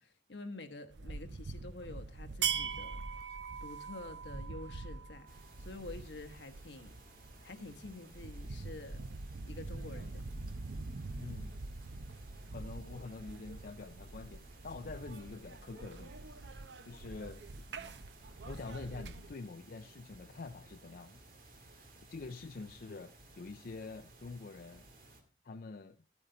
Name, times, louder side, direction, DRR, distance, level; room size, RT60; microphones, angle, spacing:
voice 1, 0.0-3.0 3.6-5.3 5.6-6.9 7.4-9.0 9.5-10.2, left 2 dB, 80° left, 1.2 m, -48 dB
sound 1, 0.9-19.3, right 5 dB, 75° right, 0.7 m, -43 dB
sound 2, 5.3-25.2, right 2 dB, 55° right, 2.1 m, -58 dB
voice 2, 11.2-11.5 12.5-16.4 16.9-17.7 18.4-21.2 22.1-24.9 25.4-26.0, left 3 dB, 55° left, 0.5 m, -46 dB
12.5 x 8.7 x 3.8 m
head